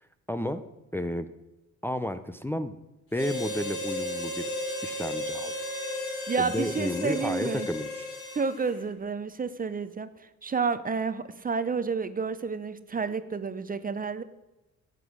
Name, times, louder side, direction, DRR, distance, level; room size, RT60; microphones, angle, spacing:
voice 1, 0.3-0.6 0.9-1.3 1.8-2.8 3.1-4.5 4.8-5.5 6.4-8.0, left 1 dB, 5° left, 9 dB, 0.6 m, -32 dB
Harmonica, 3.1-8.8, left 1 dB, 50° left, 3.3 m, -34 dB
voice 2, 6.3-7.7 8.3-10.1 10.4-14.2, right 5 dB, 30° right, 13 dB, 0.8 m, -30 dB
12.5 x 8.5 x 6.2 m, 1.0 s
cardioid pair, 90°, 30 cm